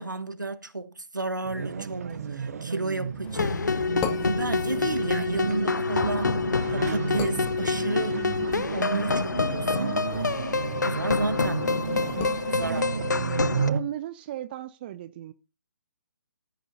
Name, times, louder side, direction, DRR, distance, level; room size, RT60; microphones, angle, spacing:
voice 1, 0.0-3.7 4.2-6.4 6.7-8.2 8.7-10.0 10.8-11.8 12.5-13.2, right 2 dB, 85° right, 1.5 m, -32 dB
sound 1, 1.4-13.8, right 6 dB, 55° right, 1.0 m, -32 dB
sound 2, 3.2-13.7, left 7 dB, 20° left, 1.3 m, -41 dB
sound 3, 3.3-13.7, left 4 dB, 75° left, 0.6 m, -27 dB
voice 2, 13.7-15.3, right 12 dB, 30° right, 0.6 m, -36 dB
14.0 x 9.1 x 2.7 m
figure-of-eight pair, 135°, 10 cm